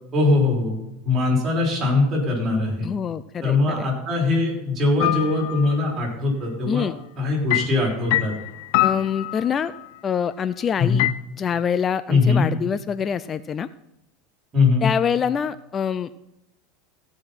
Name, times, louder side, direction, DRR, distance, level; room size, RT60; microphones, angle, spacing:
voice 1, 0.1-0.8 1.0-2.9 3.4-6.9 7.2-8.3 10.8-11.0 12.1-12.5 14.5-14.9, left 3 dB, 30° right, -2 dB, 5.5 m, -21 dB
voice 2, 2.8-3.9 6.7-7.0 8.8-9.7 10.0-11.1 11.4-13.7 14.8-16.2, left 7 dB, 30° left, 15 dB, 0.4 m, -25 dB
sound 1, 5.0-5.8 7.5-9.9 11.0-11.1, left 16 dB, 70° left, 0.6 m, -24 dB
16.5 x 5.9 x 6.0 m, 0.87 s
supercardioid pair, 120°, 0 cm